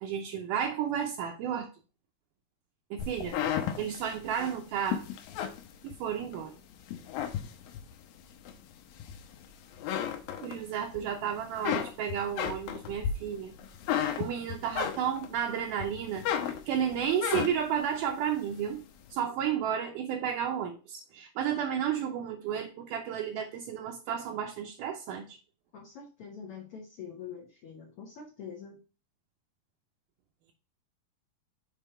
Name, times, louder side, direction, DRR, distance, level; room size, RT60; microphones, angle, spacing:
voice 1, 0.0-1.7 2.9-3.4 3.8-5.1 5.8-6.5 10.4-13.5 14.2-16.3 16.7-18.8 19.1-25.4, right 8 dB, 75° right, 1 dB, 2.1 m, -32 dB
sound 1, 3.0-6.4 6.8-7.9 8.5-9.4 9.7-11.0 11.3-15.4 15.8-17.8, left 9 dB, 85° left, 2.5 m, -33 dB
voice 2, 25.7-28.8, left 7 dB, 55° left, -1 dB, 1.7 m, -45 dB
7.0 x 3.7 x 4.3 m, 0.34 s
omnidirectional pair, 4.0 m